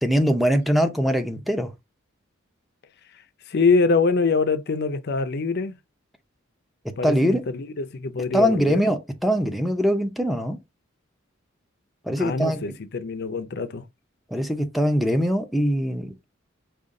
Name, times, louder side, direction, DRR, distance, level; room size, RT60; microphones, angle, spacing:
voice 1, 0.0-1.7 7.0-7.4 8.3-10.6 12.0-12.6 14.3-16.3, equal, ahead, 0.6 m, -22 dB
voice 2, 3.1-5.8 7.0-8.8 12.2-13.8, left 4 dB, 55° left, 0.5 m, -24 dB
5.1 x 2.4 x 3.6 m
head